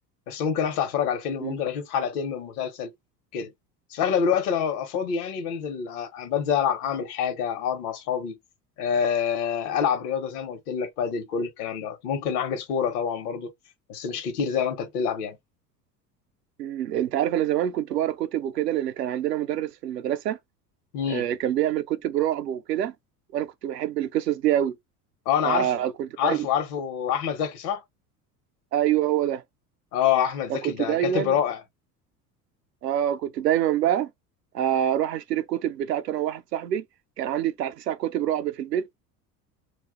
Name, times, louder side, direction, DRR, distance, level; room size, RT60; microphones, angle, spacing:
voice 1, 0.3-2.9 3.3-3.5 3.9-8.4 8.8-13.5 13.9-15.4 20.9-21.3 25.3-25.8 26.2-27.8 29.9-31.6, left 8 dB, 65° left, 0.9 m, -26 dB
voice 2, 16.6-20.4 21.1-22.9 23.3-24.8 25.4-26.5 28.7-29.4 30.5-31.4 32.8-34.1 34.5-36.8 37.2-38.9, right 11 dB, 85° right, 0.6 m, -26 dB
2.3 x 2.2 x 3.6 m
figure-of-eight pair, 70°, 49 cm